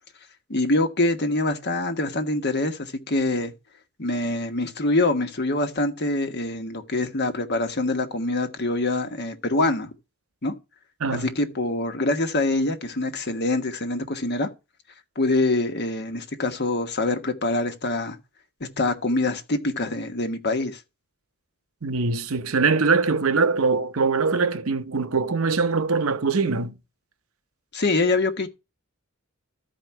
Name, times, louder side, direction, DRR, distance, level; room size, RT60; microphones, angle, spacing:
voice 1, 0.5-3.5 4.0-9.9 10.4-10.5 11.1-14.5 15.1-18.2 18.6-20.8 27.7-28.5, left 2 dB, 50° left, 1.3 m, -25 dB
voice 2, 21.8-26.7, right 4 dB, 65° right, 0.8 m, -22 dB
14.0 x 4.9 x 4.7 m
head